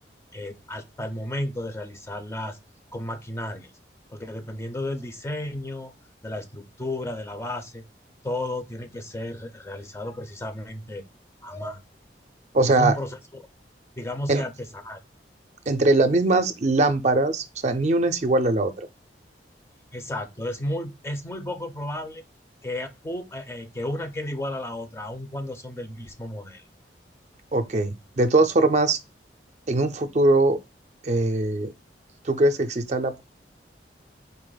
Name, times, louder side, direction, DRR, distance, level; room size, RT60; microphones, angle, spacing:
voice 1, 0.3-2.6 2.9-3.7 4.1-5.9 6.2-7.8 8.2-11.0 11.4-11.9 12.7-13.5 14.0-15.0 19.9-22.2 22.6-26.6, left 1 dB, 15° left, 0.4 m, -33 dB
voice 2, 12.5-12.9 14.3-14.4 15.7-18.9 27.5-29.0 29.7-30.6 31.0-31.7 32.2-33.2, right 2 dB, 40° right, 0.4 m, -21 dB
4.1 x 2.9 x 3.8 m
head